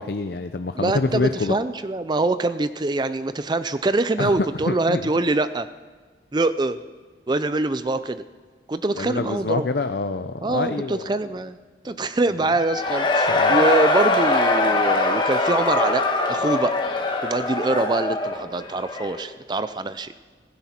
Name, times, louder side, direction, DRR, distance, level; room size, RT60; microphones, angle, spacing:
voice 1, 0.0-1.6 4.2-4.3 4.7-5.1 8.9-11.1 12.4-12.5 13.3-13.6, left 3 dB, 60° left, 8 dB, 0.6 m, -26 dB
voice 2, 0.8-5.7 6.3-6.8 7.3-8.2 8.7-9.6 10.4-11.6 11.8-16.7 17.2-20.1, right 2 dB, 25° right, 12 dB, 0.4 m, -24 dB
Cheering / Crowd, 12.5-19.2, left 2 dB, 25° left, 1.4 m, -22 dB
16.5 x 15.5 x 4.4 m, 1.4 s
head